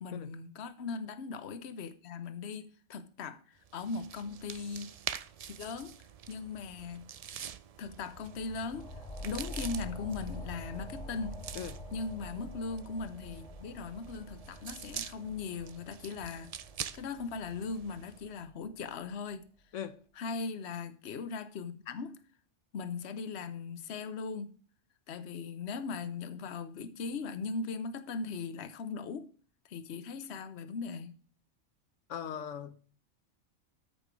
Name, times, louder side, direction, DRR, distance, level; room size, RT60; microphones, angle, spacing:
voice 1, 0.0-4.9 5.6-6.0 6.3-7.1 7.8-8.9 9.2-11.4 11.9-16.5 16.9-19.4 20.1-22.2 22.7-24.5 25.1-29.3 29.7-31.1, left 4 dB, 65° left, 1.1 m, -39 dB
sound 1, 3.6-18.3, right 8 dB, 65° right, 0.3 m, -46 dB
sound 2, 7.9-19.0, equal, 30° left, 2.3 m, -47 dB
voice 2, 32.1-32.9, left 8 dB, 85° left, 1.1 m, -40 dB
13.0 x 5.9 x 4.7 m
omnidirectional pair, 1.2 m